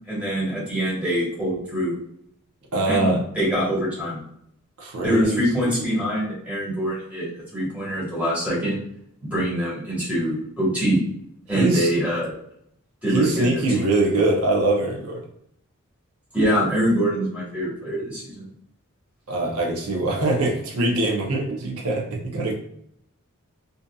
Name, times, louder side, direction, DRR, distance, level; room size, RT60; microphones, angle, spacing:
voice 1, 0.1-1.9 2.9-4.2 5.0-8.8 9.2-11.0 11.5-12.3 13.0-13.9 16.3-18.4, equal, 5° right, -9 dB, 1.3 m, -24 dB
voice 2, 2.7-3.2 4.8-5.7 11.6-11.9 13.1-15.2 19.3-22.5, right 2 dB, 75° right, -1 dB, 0.7 m, -23 dB
2.6 x 2.5 x 2.3 m, 0.71 s
head